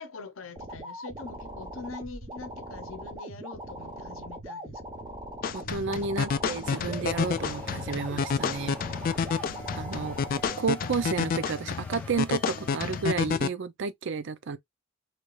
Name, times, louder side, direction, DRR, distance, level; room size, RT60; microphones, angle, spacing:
voice 1, 0.0-4.8, left 3 dB, 70° left, 0.7 m, -43 dB
sound 1, 0.6-10.6, right 1 dB, 20° right, 1.0 m, -41 dB
sound 2, 5.4-13.5, left 6 dB, 45° left, 0.3 m, -30 dB
voice 2, 5.5-8.8 9.7-10.2 10.6-14.6, right 5 dB, 60° right, 0.5 m, -31 dB
sound 3, 6.6-13.1, equal, 10° left, 0.7 m, -46 dB
3.3 x 3.0 x 2.4 m
head